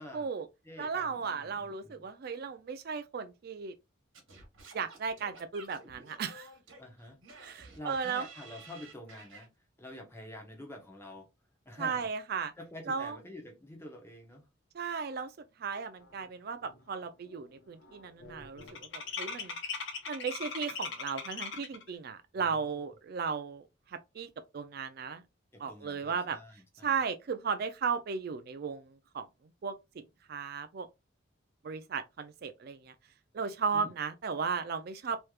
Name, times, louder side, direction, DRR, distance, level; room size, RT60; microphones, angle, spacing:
voice 1, 0.1-0.5 0.8-3.7 4.7-6.5 7.4-8.3 11.8-12.5 12.9-13.2 14.7-15.3 15.6-19.6 20.1-25.2 25.6-26.4 26.8-29.3 29.6-30.9 31.6-32.9 33.3-35.2, right 5 dB, 50° right, 0.4 m, -35 dB
voice 2, 0.6-2.1 6.8-7.2 7.8-9.5 9.8-11.3 11.7-12.1 12.6-14.4 22.4-22.8 25.5-26.9 33.7-33.9, left 1 dB, 15° left, 0.9 m, -48 dB
Singing / Scratching (performance technique), 4.1-9.5, right 3 dB, 85° right, 1.3 m, -52 dB
sound 1, 16.2-16.3 16.6-17.0 17.3-21.9, left 5 dB, 70° left, 0.9 m, -40 dB
3.2 x 3.1 x 2.3 m
head